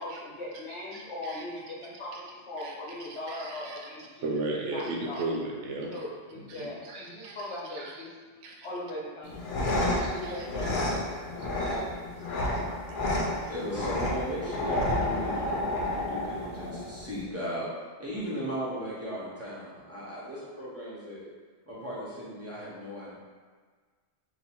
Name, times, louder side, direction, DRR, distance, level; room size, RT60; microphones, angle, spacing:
voice 1, 0.0-2.1 2.5-4.3 4.7-5.2 5.9-8.1 8.6-9.3 10.1-11.3, left 1 dB, 70° left, -5 dB, 1.3 m, -39 dB
voice 2, 0.9-1.4 2.1-2.2 2.6-2.7 3.1-3.9 4.2-6.0 6.3-8.0 8.4-8.7 9.6-11.9 12.2-12.3, right 2 dB, 85° right, 0 dB, 0.9 m, -37 dB
sound 1, 9.2-17.2, left 1 dB, 55° left, 0.6 m, -30 dB
voice 3, 13.4-17.7 18.0-21.3 21.7-23.1, equal, 15° right, -8 dB, 1.0 m, -37 dB
2.8 x 2.8 x 4.3 m, 1.6 s
omnidirectional pair, 1.2 m